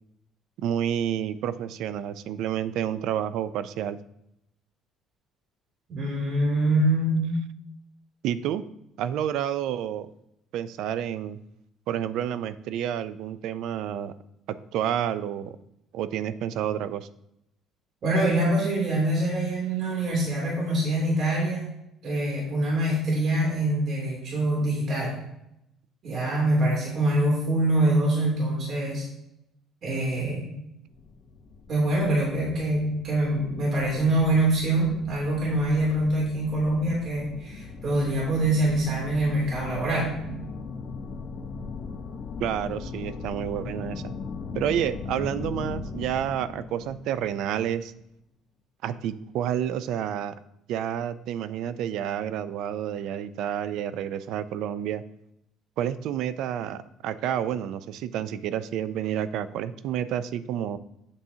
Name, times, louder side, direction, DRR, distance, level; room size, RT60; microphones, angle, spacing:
voice 1, 0.6-4.0 8.2-8.6 9.0-10.1 10.5-11.4 11.9-14.1 14.5-15.6 15.9-17.1 42.4-44.1 44.5-47.9 48.8-50.3 50.7-55.0 55.8-60.8, right 10 dB, 75° right, 15 dB, 0.4 m, -29 dB
voice 2, 5.9-7.3 18.0-21.7 22.0-25.2 26.0-29.1 29.8-30.5 31.7-40.2, right 1 dB, 50° right, -4 dB, 2.8 m, -24 dB
sound 1, 30.9-47.9, left 5 dB, 50° left, 0.8 m, -39 dB
8.0 x 6.8 x 2.8 m, 0.81 s
cardioid pair, 110°, 0 cm